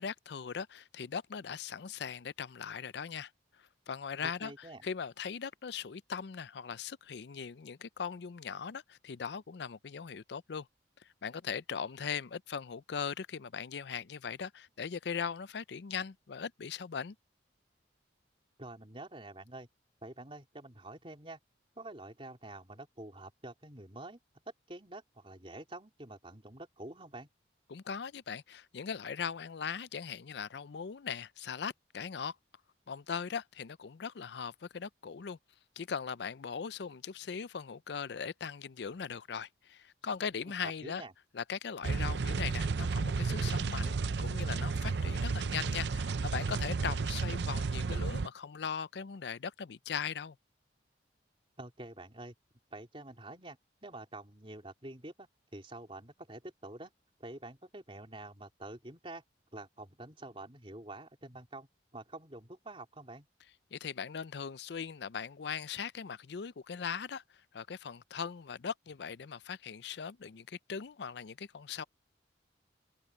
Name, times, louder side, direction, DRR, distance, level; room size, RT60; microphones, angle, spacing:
voice 1, 0.0-3.3 3.9-4.5 4.8-10.7 11.0-17.2 27.7-32.4 32.9-35.4 35.8-41.0 41.3-50.4 63.7-67.2 67.5-71.8, left 6 dB, 65° left, 0.5 m, -39 dB
voice 2, 4.2-4.9 18.6-19.7 20.0-21.4 21.8-24.2 24.7-27.3 40.6-41.1 51.6-52.3 52.7-53.6 53.8-56.9 57.2-59.2 59.5-61.7 61.9-63.3, right 2 dB, 30° right, 3.6 m, -47 dB
sound 1, 41.8-48.3, right 4 dB, 65° right, 0.5 m, -32 dB
open air
head